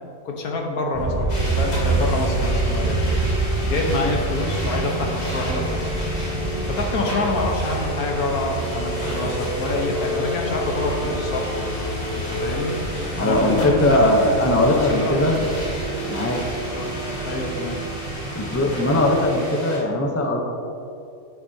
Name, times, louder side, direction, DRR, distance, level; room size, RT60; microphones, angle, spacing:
voice 1, 0.2-3.0 3.7-5.9 6.7-11.5 12.2-12.8 13.2-14.1 14.7-15.4 16.7-16.9 17.2-17.8, left 2 dB, 70° left, 1 dB, 1.6 m, -27 dB
sound 1, 0.9-19.3, right 3 dB, 50° right, 0.3 m, -28 dB
sound 2, 1.3-19.8, equal, 90° left, 2.9 m, -33 dB
sound 3, 5.2-17.8, left 2 dB, 40° left, 1.3 m, -33 dB
voice 2, 13.1-15.3 16.1-16.4 18.3-20.4, left 1 dB, 15° left, 1 dB, 0.5 m, -19 dB
10.0 x 9.0 x 2.8 m, 2.6 s
omnidirectional pair, 1.6 m